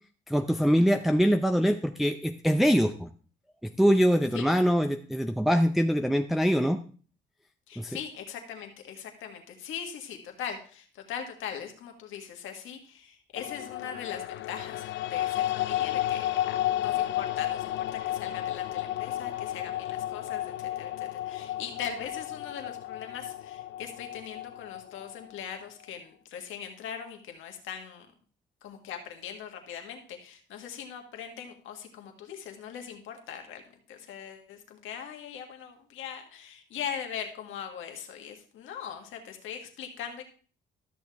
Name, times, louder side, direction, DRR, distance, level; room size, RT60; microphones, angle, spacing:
voice 1, 0.3-3.1 3.8-6.8 7.8-8.0, equal, ahead, 5 dB, 0.5 m, -23 dB
voice 2, 7.7-14.8 15.1-28.1 28.6-33.6 33.9-40.2, left 8 dB, 85° left, 4 dB, 1.7 m, -40 dB
sound 1, 13.4-25.6, left 13 dB, 70° left, 0.4 m, -32 dB
13.0 x 6.6 x 3.5 m, 0.40 s
cardioid pair, 90°, 20 cm